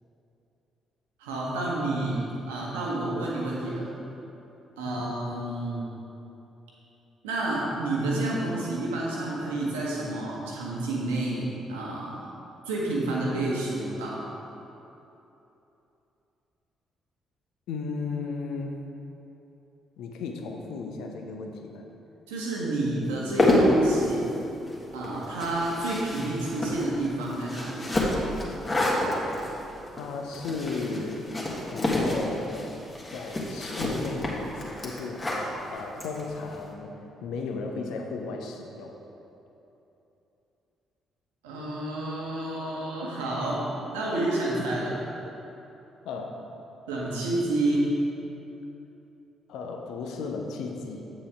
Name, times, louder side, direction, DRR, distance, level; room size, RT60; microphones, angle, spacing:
voice 1, 1.2-3.9 4.8-5.8 7.2-12.2 12.6-14.2 22.3-24.3 24.9-27.9 41.4-45.0 46.9-47.9, right 2 dB, 75° right, -4 dB, 1.3 m, -29 dB
voice 2, 17.7-18.8 20.0-21.9 30.0-31.4 31.7-32.8 33.1-36.9 37.2-38.9 46.0-46.4 49.5-51.1, left 4 dB, 60° left, 3 dB, 0.7 m, -35 dB
sound 1, 23.1-36.6, left 1 dB, 25° left, 1.7 m, -28 dB
8.4 x 7.3 x 3.5 m, 3.0 s
figure-of-eight pair, 45°, 0 cm